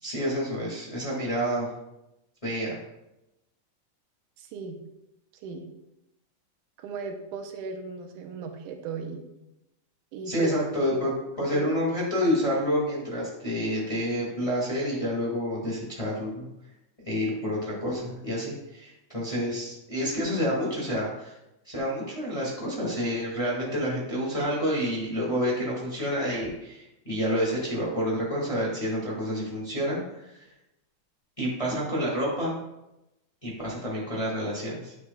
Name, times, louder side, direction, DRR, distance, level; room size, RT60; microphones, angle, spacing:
voice 1, 0.0-1.7 2.4-2.8 10.2-11.1 11.4-16.5 17.0-21.4 21.6-30.4 31.4-32.5 33.4-34.9, equal, 15° left, -5 dB, 1.6 m, -28 dB
voice 2, 4.4-4.8 5.4-5.7 6.8-9.4 10.1-10.6 10.9-11.2 11.5-11.7, right 4 dB, 90° right, 4 dB, 2.3 m, -36 dB
9.5 x 8.0 x 2.4 m, 0.92 s
omnidirectional pair, 3.5 m